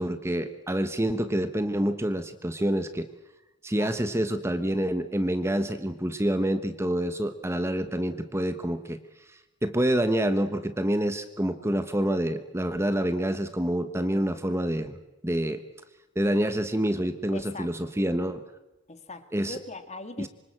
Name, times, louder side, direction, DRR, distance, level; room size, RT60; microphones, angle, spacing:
voice 1, 0.0-3.1 3.6-9.0 9.6-15.0 15.2-15.6 16.1-18.4 19.3-19.6 20.2-20.3, right 1 dB, 15° right, 9 dB, 1.2 m, -27 dB
voice 2, 17.3-17.9 18.9-20.3, left 2 dB, 35° left, 9 dB, 2.1 m, -41 dB
26.5 x 24.5 x 7.7 m, 1.0 s
head